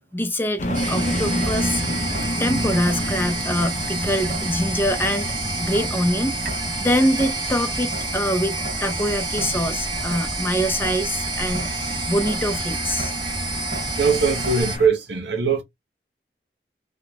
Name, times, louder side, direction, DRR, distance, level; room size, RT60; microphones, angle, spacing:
voice 1, 0.1-1.8 2.4-6.3 6.8-11.7 12.1-13.1, equal, 10° left, 0.5 m, -24 dB
sound 1, 0.6-14.9, left 1 dB, 45° left, 0.7 m, -30 dB
Traffic noise roadway noise / Drip / Trickle dribble, 0.6-14.6, right 1 dB, 50° right, 1.0 m, -36 dB
sound 2, 0.7-14.8, right 3 dB, 25° right, 1.1 m, -29 dB
voice 2, 14.0-15.6, right 5 dB, 85° right, 1.3 m, -20 dB
3.9 x 2.3 x 3.5 m
head